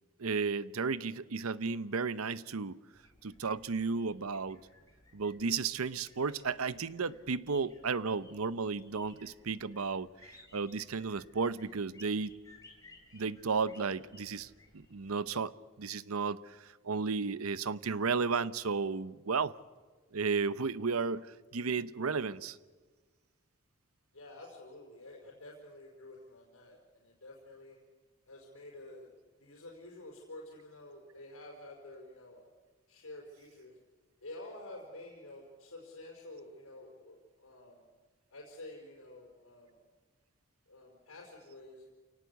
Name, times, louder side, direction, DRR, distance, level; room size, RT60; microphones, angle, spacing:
voice 1, 0.2-2.8 3.2-4.6 5.1-12.3 13.1-19.5 20.1-21.3 21.5-22.6, right 4 dB, 90° right, 0.8 m, -33 dB
sound 1, 2.9-15.2, left 3 dB, 15° left, 4.1 m, -61 dB
voice 2, 24.1-27.8 28.3-29.1 29.4-32.4 32.9-33.7 34.2-37.8 38.3-39.7 40.7-41.8, left 2 dB, 80° left, 5.1 m, -50 dB
28.5 x 18.0 x 8.3 m
head